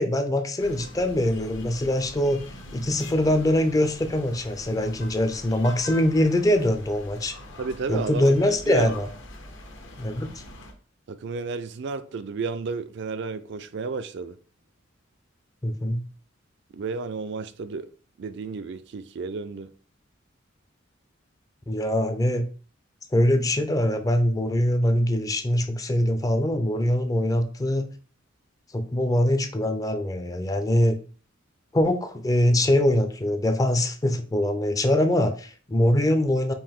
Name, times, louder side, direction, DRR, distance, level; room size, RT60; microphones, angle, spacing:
voice 1, 0.0-2.4 2.7-7.4 7.9-9.1 10.0-10.3 15.6-16.0 21.7-22.5 23.1-27.9 28.7-31.0 31.7-36.5, left 1 dB, 20° left, 0.4 m, -23 dB
sound 1, 0.6-10.7, left 1 dB, 65° left, 0.9 m, -43 dB
voice 2, 7.6-8.9 11.1-14.4 16.7-17.9 18.2-19.7, right 4 dB, 60° right, 0.4 m, -32 dB
5.4 x 2.5 x 3.6 m
head